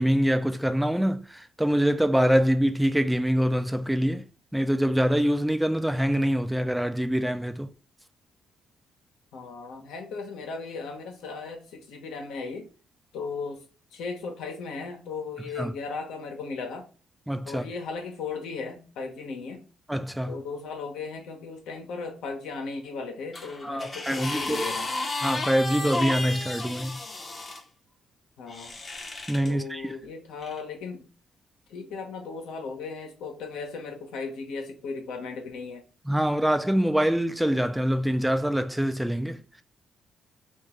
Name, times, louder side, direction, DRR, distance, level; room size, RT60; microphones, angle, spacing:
voice 1, 0.0-4.3 4.5-7.7 15.6-15.7 17.3-17.6 19.9-20.4 23.6-24.6 25.2-27.0 29.3-30.0 36.1-39.6, equal, 5° right, 0.3 m, -25 dB
voice 2, 9.3-12.7 13.1-13.6 13.9-16.9 17.4-19.6 20.3-24.9 28.4-28.7 29.5-31.0 31.7-35.8, left 4 dB, 85° left, 0.9 m, -36 dB
sound 1, 23.3-27.6 28.5-29.5 30.4-30.6, left 2 dB, 30° left, 0.7 m, -33 dB
3.0 x 2.5 x 3.6 m
cardioid pair, 90°, 0 cm